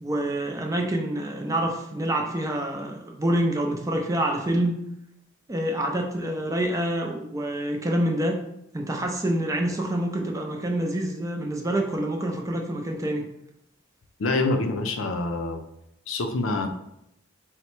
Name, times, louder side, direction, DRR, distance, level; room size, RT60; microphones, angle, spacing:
voice 1, 0.0-4.7 5.5-8.4 8.7-13.3, right 1 dB, 15° right, 2 dB, 0.5 m, -27 dB
voice 2, 14.2-15.6 16.1-16.7, left 2 dB, 85° left, 5 dB, 0.5 m, -26 dB
4.1 x 2.1 x 4.4 m, 0.78 s
head